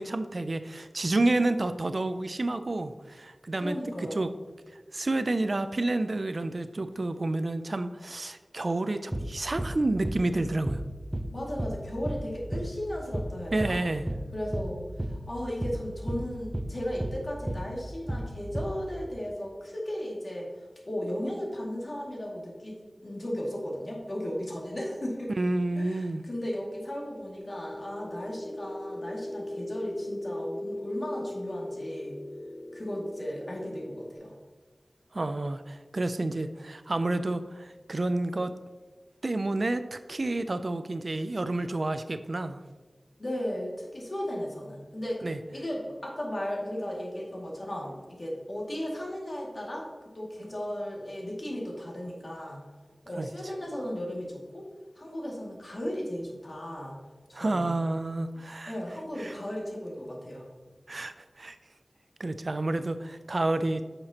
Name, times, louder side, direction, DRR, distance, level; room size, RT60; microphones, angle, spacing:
voice 1, 0.0-4.3 4.9-10.8 13.5-14.0 25.4-26.2 35.1-38.5 39.2-42.6 45.2-45.4 53.2-53.3 57.3-58.7 59.2-59.3 60.9-61.6 62.2-63.8, right 2 dB, 55° right, 10 dB, 0.4 m, -29 dB
voice 2, 3.6-4.2 11.3-13.8 14.3-25.3 25.8-32.2 32.7-34.3 43.2-45.2 45.5-49.9 50.1-52.6 53.1-54.7 55.0-57.0 57.3-57.7 58.7-60.5, equal, 50° left, -3 dB, 2.2 m, -35 dB
sound 1, 9.1-9.3 9.6-9.8 10.0-10.2 10.7-10.9 11.1-11.3 11.6-11.8 12.1-12.3 12.5-12.7 13.1-13.3 13.6-13.8 14.1-14.3 14.5-14.7 15.0-15.2 15.6-15.8 16.1-16.3 16.5-16.7 17.0-17.2 17.5-17.7 18.1-18.3 18.6-18.8, right 1 dB, 15° right, 0.7 m, -32 dB
sound 2, 27.4-34.1, left 1 dB, 15° left, 0.8 m, -38 dB
9.8 x 6.6 x 2.9 m, 1.4 s
wide cardioid pair, 70°, 0 cm